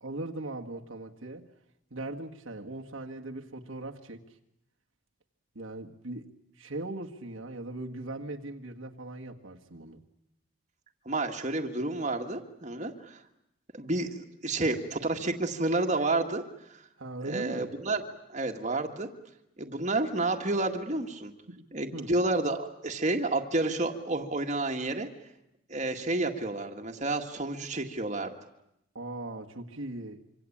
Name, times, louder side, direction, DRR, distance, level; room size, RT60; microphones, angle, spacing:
voice 1, 0.0-1.4 1.9-4.2 5.6-6.3 6.6-10.0 17.0-17.7 21.5-21.7 21.9-22.1 29.0-30.2, right 2 dB, 70° right, 2 dB, 1.8 m, -39 dB
voice 2, 11.1-13.2 13.7-16.4 16.7-16.8 17.2-18.0 18.3-19.1 19.6-21.3 21.7-25.1 25.7-28.3, right 2 dB, 35° right, 3 dB, 1.9 m, -30 dB
26.0 x 25.5 x 8.7 m, 0.81 s
head